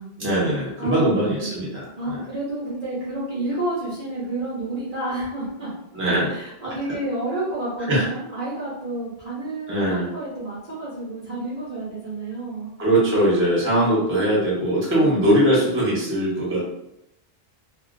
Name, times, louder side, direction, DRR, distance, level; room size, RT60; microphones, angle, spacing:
voice 1, 0.2-2.2 5.9-6.3 7.9-8.1 9.7-10.1 12.8-16.6, right 1 dB, 15° right, -6 dB, 0.7 m, -21 dB
voice 2, 0.8-1.6 2.0-5.7 6.3-12.7 14.9-15.1, right 2 dB, 45° right, -9 dB, 0.7 m, -30 dB
2.3 x 2.1 x 2.5 m, 0.83 s
omnidirectional pair, 1.0 m